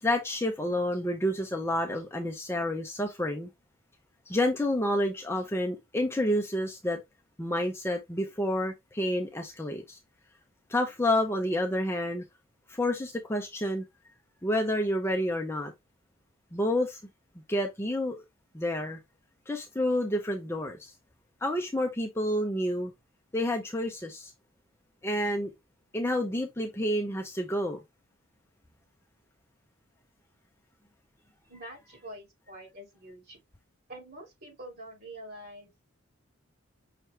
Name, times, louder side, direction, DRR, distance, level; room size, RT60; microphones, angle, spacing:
voice 1, 0.0-3.5 4.3-7.0 7.4-10.0 10.7-12.2 12.7-13.8 14.4-15.7 16.5-17.0 17.5-18.2 18.5-19.0 19.5-20.9 21.4-22.9 23.3-24.3 25.0-25.5 25.9-27.8, left 1 dB, 10° left, 0.6 m, -29 dB
voice 2, 31.5-33.4 33.9-35.8, right 1 dB, 50° right, 2.5 m, -46 dB
5.8 x 2.9 x 3.1 m
head